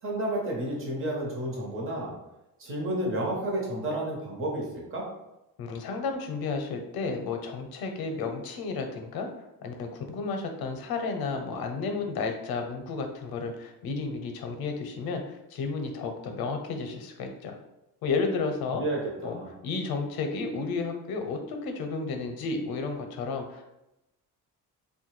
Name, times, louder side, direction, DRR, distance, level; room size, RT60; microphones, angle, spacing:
voice 1, 0.0-2.1 2.6-5.1 18.8-19.5, right 1 dB, 35° right, -2 dB, 0.8 m, -31 dB
voice 2, 5.6-9.3 9.6-17.6 18.0-18.8 19.2-19.4 19.6-23.7, left 4 dB, 70° left, 4 dB, 0.6 m, -32 dB
3.0 x 2.2 x 3.1 m, 0.92 s
cardioid pair, 175°, 37 cm